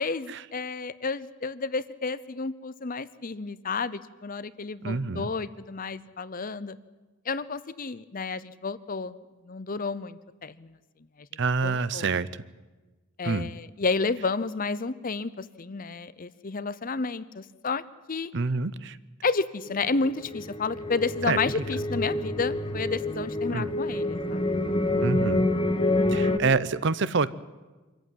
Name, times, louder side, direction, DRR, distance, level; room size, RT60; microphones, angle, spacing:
voice 1, 0.0-6.8 7.3-9.1 9.4-10.8 11.6-12.1 13.2-17.8 18.1-18.3 19.2-24.5, left 4 dB, 40° left, 16 dB, 0.7 m, -31 dB
voice 2, 4.8-5.3 11.4-12.3 13.2-13.5 18.3-19.0 21.3-21.4 23.5-23.7 25.0-25.5 26.1-27.3, right 4 dB, 60° right, 17 dB, 0.7 m, -26 dB
sound 1, 19.6-26.4, left 2 dB, 25° left, 1.4 m, -27 dB
25.0 x 14.5 x 9.3 m, 1.2 s
head